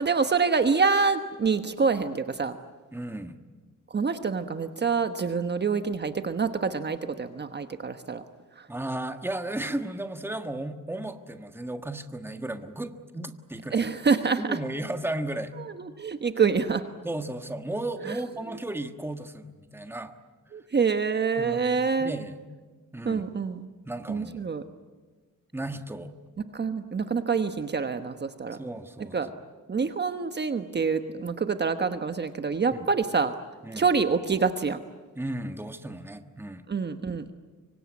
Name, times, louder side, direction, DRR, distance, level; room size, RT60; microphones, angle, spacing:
voice 1, 0.0-2.6 3.9-8.2 8.6-8.7 13.7-14.6 15.6-16.8 18.0-18.2 20.5-22.1 23.0-23.7 24.1-24.6 26.5-28.6 29.1-29.3 29.7-33.4 33.7-34.8 36.7-37.3, right 5 dB, 35° right, 9 dB, 1.2 m, -26 dB
voice 2, 2.9-3.4 8.7-13.9 14.4-15.5 17.0-20.1 21.4-22.4 22.9-23.3 23.8-24.5 25.5-26.1 28.6-29.1 32.7-32.9 33.6-33.9 35.1-36.6, right 1 dB, 5° right, 7 dB, 1.5 m, -34 dB
25.0 x 25.0 x 9.5 m, 1.4 s
cardioid pair, 130°, 32 cm